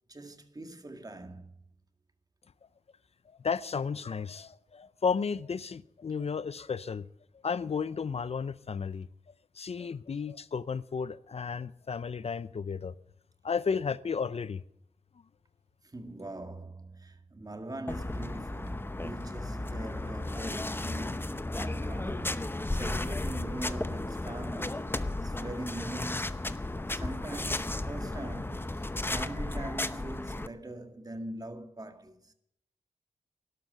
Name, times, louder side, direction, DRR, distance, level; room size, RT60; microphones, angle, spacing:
voice 1, 0.1-1.5 15.8-26.5 26.9-32.3, right 1 dB, 30° right, 1.9 m, -42 dB
voice 2, 3.4-7.1 7.4-9.1 9.6-12.9 13.4-14.6, left 5 dB, 55° left, 0.6 m, -33 dB
sound 1, 17.9-30.5, left 2 dB, 20° left, 0.8 m, -34 dB
12.0 x 12.0 x 7.9 m
wide cardioid pair, 70°, 12 cm